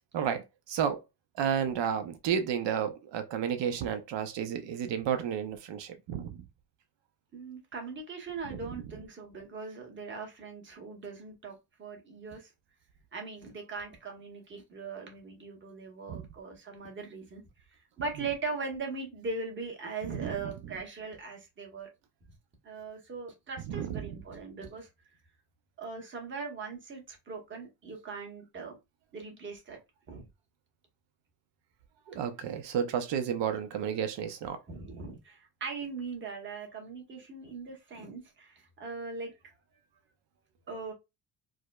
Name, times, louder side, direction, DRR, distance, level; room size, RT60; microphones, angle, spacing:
voice 1, 0.1-1.0 1.4-6.4 8.4-9.0 16.1-16.2 18.3-18.4 20.0-20.8 23.6-24.2 32.1-34.6, right 8 dB, 80° right, 0.6 m, -32 dB
voice 2, 7.3-12.5 13.1-17.4 18.0-21.9 22.6-24.9 25.8-28.8 29.1-29.8 30.1-30.2 34.7-39.3 40.7-40.9, right 4 dB, 25° right, 0.9 m, -40 dB
4.7 x 2.1 x 2.3 m
cardioid pair, 175°, 42 cm